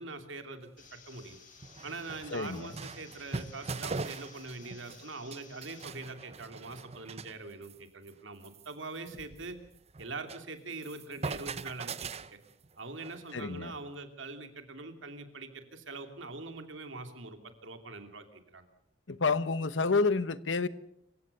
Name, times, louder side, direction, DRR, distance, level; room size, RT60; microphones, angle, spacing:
voice 1, 0.0-1.4 1.8-9.6 10.0-12.4 12.8-18.6 19.1-19.2, right 3 dB, 80° right, 2.8 m, -43 dB
sound 1, 0.7-0.8 1.3-1.4 1.6-5.0 5.3-7.3 7.6-7.8 8.1-8.2 8.4-10.5 10.7-13.4, right 4 dB, 35° right, 0.8 m, -41 dB
sound 2, 0.8-5.8, left 6 dB, 45° left, 4.3 m, -56 dB
voice 2, 2.3-2.7 13.3-13.7 19.1-20.7, left 4 dB, 70° left, 1.0 m, -29 dB
26.5 x 15.5 x 6.7 m
head